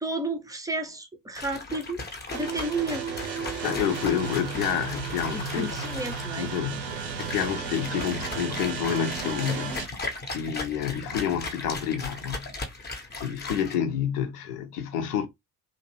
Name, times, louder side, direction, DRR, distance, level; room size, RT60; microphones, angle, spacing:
voice 1, 0.0-2.0 2.3-3.1 5.3-6.5, right 2 dB, 5° right, 0.6 m, -32 dB
sound 1, 1.3-13.8, left 3 dB, 20° left, 0.8 m, -37 dB
sound 2, 2.3-9.9, right 5 dB, 85° right, 0.7 m, -34 dB
voice 2, 3.4-5.9 6.4-9.9 10.3-12.5 12.8-15.3, left 8 dB, 70° left, 0.8 m, -29 dB
2.7 x 2.5 x 3.0 m
figure-of-eight pair, 55°, 49 cm